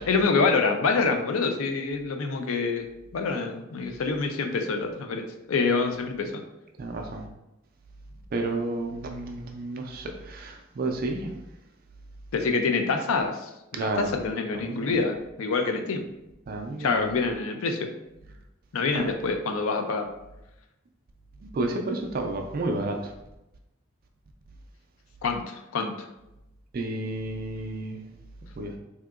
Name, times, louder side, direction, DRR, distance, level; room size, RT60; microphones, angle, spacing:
voice 1, 0.1-2.9 3.1-6.4 12.3-16.1 16.8-17.9 18.7-20.1 25.2-26.1, left 4 dB, 75° left, 5 dB, 0.4 m, -26 dB
voice 2, 6.8-7.3 8.3-11.3 13.7-14.1 14.5-14.9 16.5-17.1 18.9-19.1 21.4-23.1 26.7-28.0 28.6-28.8, right 2 dB, 40° right, 3 dB, 0.3 m, -31 dB
3.5 x 2.8 x 2.4 m, 0.93 s
head